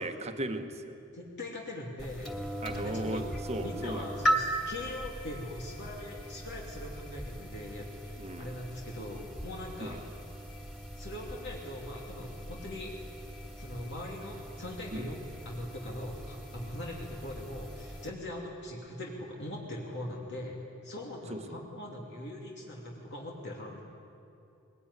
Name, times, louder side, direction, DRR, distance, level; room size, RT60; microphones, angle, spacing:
voice 1, 0.0-1.0 2.6-4.1 8.2-8.5 9.8-10.0 14.9-15.1 21.3-21.6, right 1 dB, 30° right, 7 dB, 1.4 m, -37 dB
voice 2, 1.1-3.2 3.6-10.0 10.9-12.9 13.6-23.8, left 1 dB, 55° left, -2 dB, 2.8 m, -41 dB
sound 1, 2.0-18.1, right 1 dB, ahead, 2.5 m, -38 dB
21.0 x 19.5 x 9.9 m, 2.7 s
head